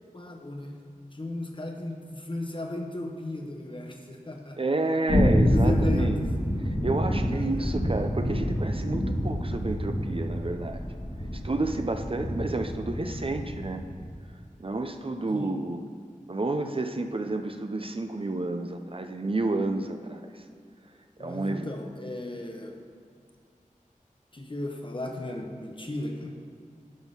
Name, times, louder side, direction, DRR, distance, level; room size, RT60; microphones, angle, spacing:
voice 1, 0.1-0.7 1.1-4.6 5.4-6.3 7.3-7.8 15.3-15.5 21.2-22.8 24.3-26.3, left 2 dB, 35° left, 2 dB, 1.0 m, -35 dB
voice 2, 4.6-6.2 6.8-10.8 11.3-13.8 14.6-15.8 16.3-20.4 21.2-21.7, right 2 dB, 40° right, 6 dB, 0.5 m, -30 dB
sound 1, 5.1-14.0, equal, 55° left, 1.9 m, -27 dB
10.5 x 3.7 x 5.5 m, 2.2 s
wide cardioid pair, 55°, 14 cm